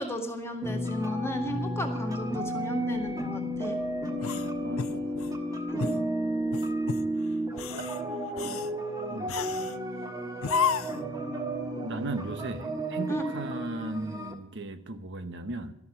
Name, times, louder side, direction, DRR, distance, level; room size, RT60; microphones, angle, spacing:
voice 1, 0.0-3.8 5.7-5.9 13.1-13.2, equal, 10° left, 3 dB, 2.0 m, -34 dB
sound 1, 0.6-14.3, right 1 dB, 15° right, 1.6 m, -32 dB
sound 2, 4.2-5.4 5.8-6.0 6.5-7.1 7.5-8.0 8.4-8.7 9.3-9.8 10.4-11.1, left 6 dB, 65° left, 0.6 m, -32 dB
voice 2, 4.6-5.1 6.8-7.1 9.1-9.4 11.8-15.7, right 2 dB, 55° right, 9 dB, 0.9 m, -37 dB
13.0 x 7.1 x 9.6 m, 0.79 s
head